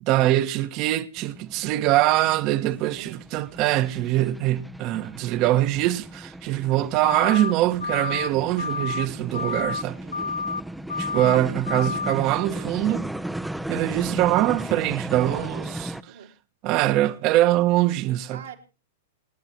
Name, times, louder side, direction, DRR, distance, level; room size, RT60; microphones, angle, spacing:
voice 1, 0.0-10.0 11.0-13.1 13.7-15.9 16.6-18.4, right 15 dB, 45° right, 1.6 m, -23 dB
sound 1, 1.2-16.0, right 1 dB, 5° right, 0.9 m, -36 dB
voice 2, 2.3-3.2 10.0-10.3 15.3-15.8 16.1-16.3 18.3-18.6, right 9 dB, 80° right, 4.0 m, -43 dB
sound 2, 7.0-7.5 7.8-8.3 8.6-9.1 9.3-9.8 10.1-10.6 10.9-11.4 11.7-12.1, left 5 dB, 90° left, 0.6 m, -29 dB
28.5 x 9.9 x 3.1 m
hypercardioid pair, 110°, 0 cm